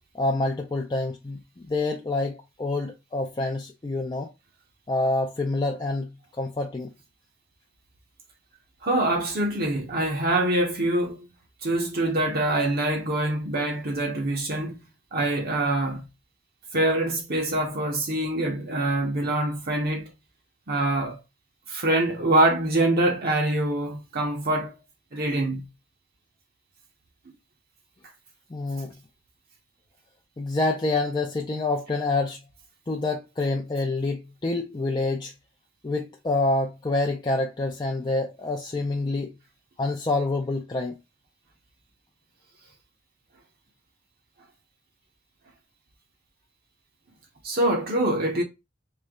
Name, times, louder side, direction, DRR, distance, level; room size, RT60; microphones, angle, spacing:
voice 1, 0.1-4.3 4.9-6.1 6.4-6.9 28.5-28.9 30.4-32.4 32.9-35.3 35.8-39.3 39.8-41.0, left 2 dB, 20° left, 0.4 m, -27 dB
voice 2, 8.8-11.3 11.6-14.8 15.1-16.1 16.7-20.1 20.7-21.2 21.7-24.8 25.1-25.7 47.4-48.4, right 1 dB, 55° right, 0.8 m, -24 dB
3.3 x 2.7 x 3.5 m
head